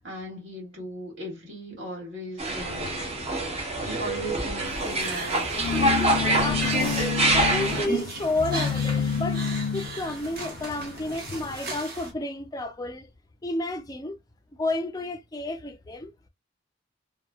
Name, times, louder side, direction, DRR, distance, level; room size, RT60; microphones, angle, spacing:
voice 1, 0.0-2.9 3.9-5.5, equal, 75° right, 1.7 m, -37 dB
sound 1, 2.4-7.9, right 2 dB, 35° right, 0.7 m, -26 dB
sound 2, 2.6-11.6, left 7 dB, 85° left, 0.4 m, -31 dB
sound 3, 4.6-12.1, right 2 dB, 50° right, 0.9 m, -37 dB
voice 2, 6.1-7.2 7.5-9.4 9.7-13.1 13.4-14.2 14.6-16.1, left 2 dB, 20° left, 0.4 m, -31 dB
3.1 x 2.2 x 2.2 m
head